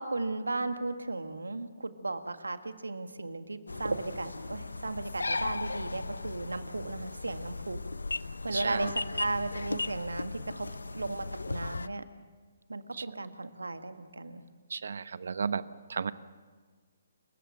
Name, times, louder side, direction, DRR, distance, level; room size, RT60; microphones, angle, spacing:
voice 1, 0.0-7.8 8.4-10.7 10.9-12.0 12.7-14.4, right 2 dB, 80° right, 9 dB, 1.8 m, -35 dB
sound 1, 3.7-11.9, left 3 dB, 75° left, 0.7 m, -37 dB
voice 2, 8.5-8.9 12.9-13.1 14.7-15.6 15.9-16.1, right 5 dB, 60° right, 15 dB, 1.0 m, -33 dB
27.5 x 15.5 x 7.6 m, 1.5 s
figure-of-eight pair, 135°, 0 cm